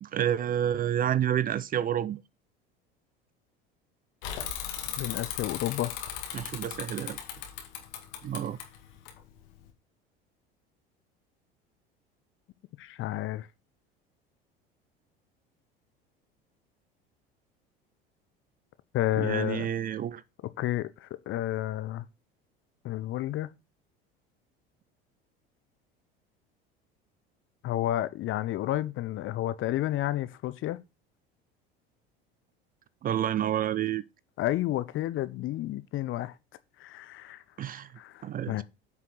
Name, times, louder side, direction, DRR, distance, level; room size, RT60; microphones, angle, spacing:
voice 1, 0.0-2.2 6.3-7.2 8.2-8.6 19.2-20.2 33.0-34.0 37.6-37.9 38.2-38.6, right 10 dB, 30° right, 0.5 m, -29 dB
Bicycle / Mechanisms, 4.2-9.7, left 9 dB, 65° left, 2.1 m, -38 dB
voice 2, 5.0-6.0 12.8-13.5 18.9-19.7 20.6-22.0 22.8-23.5 27.6-30.8 34.4-36.3 36.8-37.4 38.0-38.6, left 14 dB, 45° left, 0.8 m, -31 dB
9.1 x 5.8 x 4.0 m
figure-of-eight pair, 70°, 29 cm